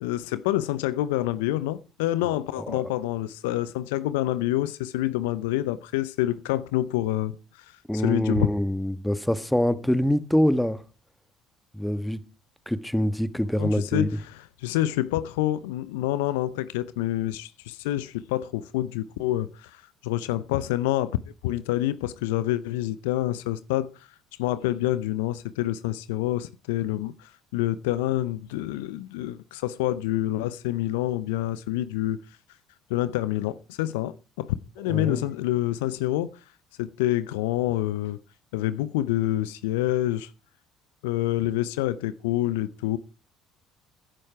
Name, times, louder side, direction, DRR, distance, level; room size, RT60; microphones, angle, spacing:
voice 1, 0.0-7.6 7.9-8.5 13.6-14.1 14.6-23.9 24.4-32.2 32.9-36.3 36.8-38.2 38.5-40.3 41.0-43.0, left 14 dB, 75° left, 0.6 m, -27 dB
voice 2, 7.9-10.8 11.7-12.2 12.7-14.1 34.9-35.3, equal, 5° left, 1.4 m, -25 dB
15.5 x 11.0 x 4.7 m
hypercardioid pair, 60°, 0 cm